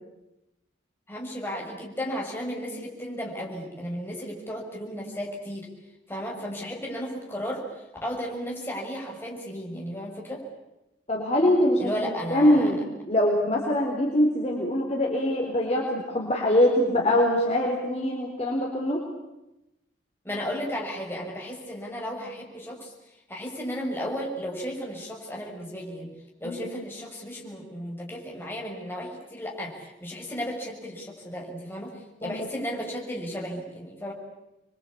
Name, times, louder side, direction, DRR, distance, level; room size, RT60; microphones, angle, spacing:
voice 1, 1.1-5.7 6.1-10.4 11.8-12.7 20.2-22.9 23.3-26.1 26.4-34.1, equal, 10° left, -3 dB, 6.3 m, -34 dB
voice 2, 11.1-12.8 13.1-19.0 26.4-26.6 32.2-32.5, left 1 dB, 35° left, -1 dB, 3.8 m, -23 dB
28.5 x 23.0 x 8.6 m, 0.95 s
head